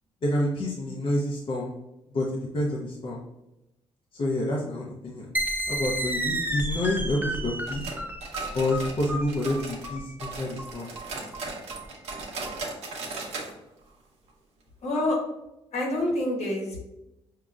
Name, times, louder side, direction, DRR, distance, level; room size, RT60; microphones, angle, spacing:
voice 1, 0.2-1.7 2.1-3.2 4.2-5.3 5.7-7.9 8.5-10.9, left 1 dB, 50° left, -4 dB, 0.8 m, -28 dB
sound 1, 5.3-12.6, right 1 dB, 15° right, 0.5 m, -32 dB
sound 2, 7.7-9.9 10.2-13.5 13.8-13.9 14.3-14.4 14.9-15.0, right 3 dB, 80° right, 0.9 m, -37 dB
voice 2, 14.8-15.2 15.7-16.9, left 1 dB, 75° left, -2 dB, 1.2 m, -27 dB
5.0 x 2.8 x 2.4 m, 0.93 s
cardioid pair, 95°, 11 cm